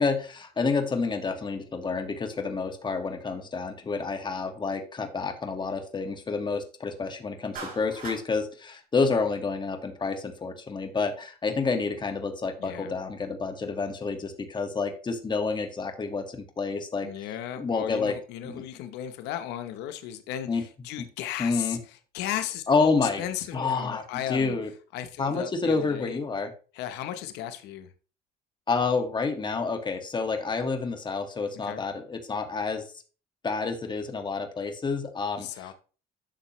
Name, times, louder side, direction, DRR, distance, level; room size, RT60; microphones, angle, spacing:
voice 1, 0.0-17.1 17.6-18.2 18.4-18.6 20.5-20.6 21.4-21.8 22.7-23.2 23.5-24.0 24.3-24.7 25.2-26.5 28.7-32.9 33.4-35.7, left 4 dB, 25° left, 1.7 m, -29 dB
Clapping, 7.5-8.2, right 4 dB, 55° right, 5.5 m, -39 dB
voice 2, 12.6-12.9 17.0-21.8 22.1-24.5 24.9-26.2 26.7-27.9 31.6-31.8 35.4-35.7, left 11 dB, 90° left, 0.9 m, -35 dB
11.5 x 6.6 x 3.1 m
cardioid pair, 110°, 17 cm